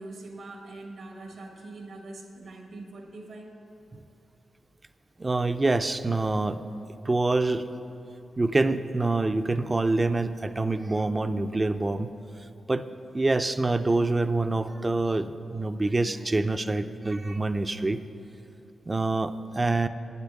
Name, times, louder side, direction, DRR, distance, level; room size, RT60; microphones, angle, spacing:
voice 1, 0.0-3.6, right 2 dB, 75° right, 3 dB, 1.4 m, -43 dB
voice 2, 5.2-6.6 7.1-7.6 8.4-12.1 12.7-12.8 13.1-18.0 18.9-19.9, right 2 dB, 30° right, 11 dB, 0.5 m, -26 dB
8.7 x 8.2 x 7.1 m, 2.8 s
cardioid pair, 65°, 0 cm